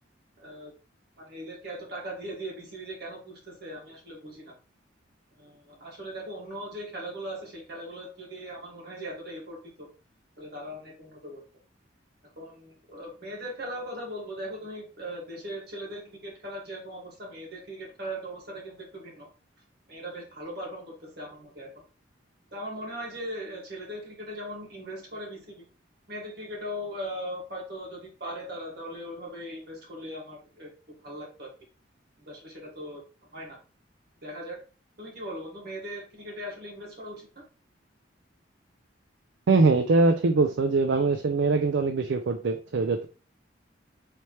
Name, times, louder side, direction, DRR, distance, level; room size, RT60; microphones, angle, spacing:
voice 1, 0.4-0.7 1.2-4.5 5.3-9.9 10.4-11.4 12.4-19.3 19.9-21.7 22.5-25.7 26.1-30.7 31.0-31.5 32.2-33.0 33.3-33.6 34.2-34.6 35.0-37.3, equal, 55° right, -2 dB, 1.8 m, -39 dB
voice 2, 39.5-43.1, right 3 dB, 75° right, 6 dB, 0.4 m, -22 dB
4.2 x 3.4 x 3.0 m, 0.35 s
head